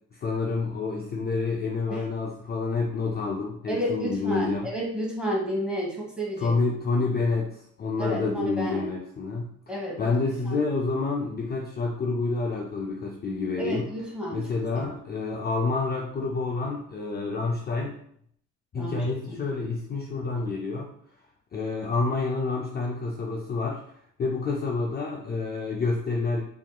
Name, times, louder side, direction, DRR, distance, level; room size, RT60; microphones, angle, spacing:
voice 1, 0.1-4.7 6.4-13.9 14.3-17.9 18.7-20.9 21.5-23.8 24.2-26.4, left 3 dB, 35° left, 0 dB, 0.4 m, -28 dB
voice 2, 3.7-6.5 8.0-8.9 9.7-10.2 10.5-10.6 13.6-14.5 14.7-14.9 18.7-19.4, equal, 5° right, -3 dB, 1.2 m, -31 dB
3.4 x 2.9 x 2.2 m, 0.67 s
cardioid pair, 90°, 30 cm